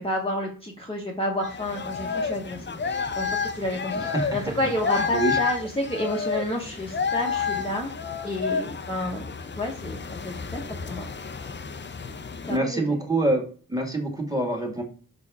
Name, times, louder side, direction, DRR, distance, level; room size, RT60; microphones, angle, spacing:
voice 1, 0.0-7.9 8.2-11.1 12.4-13.0, left 1 dB, 15° left, -1 dB, 1.0 m, -30 dB
sound 1, 1.4-12.6, left 5 dB, 30° left, 0.6 m, -30 dB
voice 2, 3.9-4.4 5.1-5.4 12.5-13.4 13.7-14.8, right 2 dB, 10° right, 2 dB, 1.9 m, -25 dB
5.9 x 4.5 x 4.7 m, 0.39 s
wide cardioid pair, 125°, 35 cm